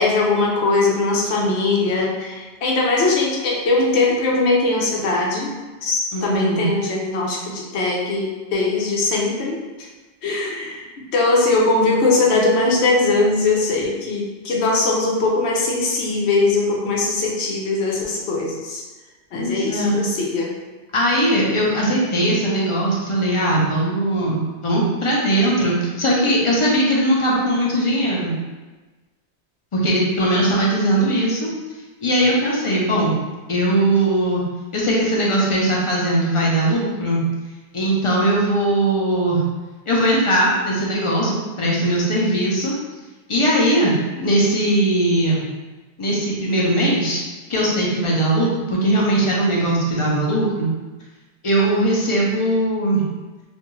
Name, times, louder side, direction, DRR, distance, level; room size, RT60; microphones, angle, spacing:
voice 1, 0.0-5.5 5.8-9.6 10.2-18.8 19.3-20.5, left 3 dB, 90° left, -2 dB, 0.9 m, -20 dB
voice 2, 6.1-6.7 19.3-20.0 20.9-28.3 29.7-31.5 32.0-33.1 33.5-34.4 34.7-37.2 37.7-39.4 39.9-42.7 43.3-45.4 46.0-47.2 47.5-50.7 51.4-53.0, right 1 dB, 40° left, -4 dB, 0.5 m, -19 dB
2.5 x 2.2 x 3.0 m, 1.2 s
omnidirectional pair, 1.1 m